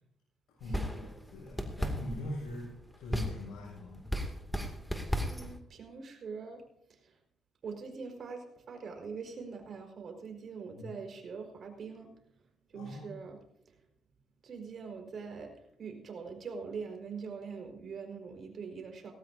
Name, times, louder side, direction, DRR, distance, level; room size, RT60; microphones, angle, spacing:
voice 1, 0.5-2.7 3.0-4.1 10.7-11.0 12.7-13.1, left 1 dB, 85° left, -3 dB, 6.1 m, -42 dB
sound 1, 0.6-5.6, equal, ahead, 2.4 m, -36 dB
voice 2, 5.1-6.6 6.9-7.1 7.6-12.1 12.7-13.4 14.4-15.5 15.8-19.1, right 5 dB, 55° right, 3 dB, 4.7 m, -43 dB
18.5 x 18.0 x 2.7 m, 0.74 s
cardioid pair, 90°, 0 cm